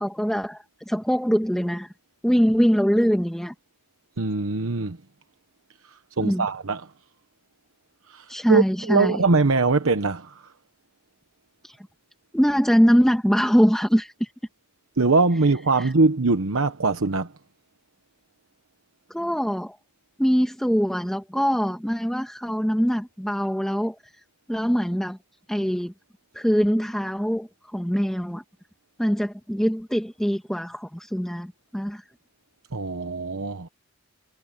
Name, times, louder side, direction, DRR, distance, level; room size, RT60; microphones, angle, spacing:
voice 1, 0.0-1.9 2.2-3.5 6.2-6.5 8.3-9.2 11.6-11.9 12.3-14.3 15.8-15.9 19.1-19.8 20.2-24.1 24.5-25.2 25.5-25.9 26.3-28.4 29.0-32.0, equal, 5° left, 1.6 m, -23 dB
voice 2, 4.2-5.0 5.9-6.8 8.1-10.5 15.0-17.3 32.7-33.7, right 3 dB, 85° right, 1.1 m, -22 dB
head